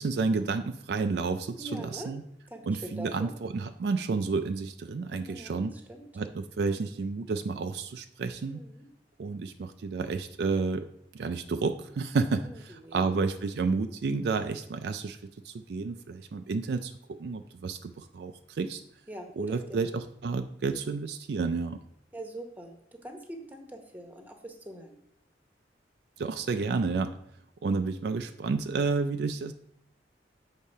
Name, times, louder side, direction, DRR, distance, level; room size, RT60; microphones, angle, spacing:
voice 1, 0.0-2.2 2.7-5.7 6.2-8.6 9.2-10.9 11.1-12.5 12.9-15.2 15.4-18.8 19.4-21.8 26.2-27.1 27.6-29.5, right 4 dB, 65° right, 8 dB, 0.4 m, -30 dB
voice 2, 1.6-2.1 2.5-3.3 5.3-6.0 8.5-8.9 12.4-13.1 19.1-19.9 22.1-24.9, right 1 dB, 10° right, 3 dB, 0.9 m, -43 dB
7.1 x 3.7 x 5.4 m, 0.76 s
head